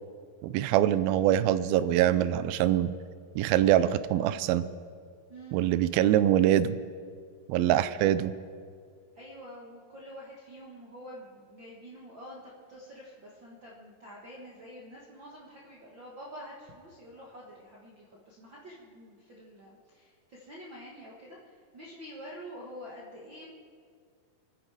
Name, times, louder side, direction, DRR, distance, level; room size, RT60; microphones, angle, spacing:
voice 1, 0.4-2.9 3.4-4.6 5.5-6.8 7.5-8.3, right 12 dB, 90° right, 14 dB, 2.4 m, -24 dB
voice 2, 9.1-12.4 12.7-23.5, equal, 50° right, -4 dB, 1.5 m, -47 dB
25.0 x 10.0 x 4.8 m, 2.1 s
omnidirectional pair, 4.2 m